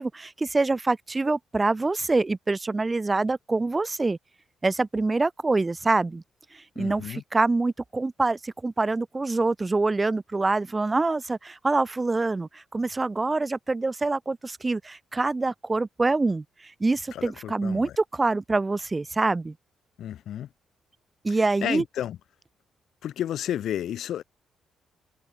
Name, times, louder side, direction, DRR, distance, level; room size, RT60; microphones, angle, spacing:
voice 1, 0.0-4.2 4.6-6.2 6.5-19.5 21.2-21.8, right 3 dB, 20° right, 0.7 m, -25 dB
voice 2, 6.8-7.2 17.1-17.9 20.0-20.5 21.6-22.2 23.0-24.2, left 11 dB, 70° left, 0.6 m, -32 dB
cardioid pair, 120°, 0 cm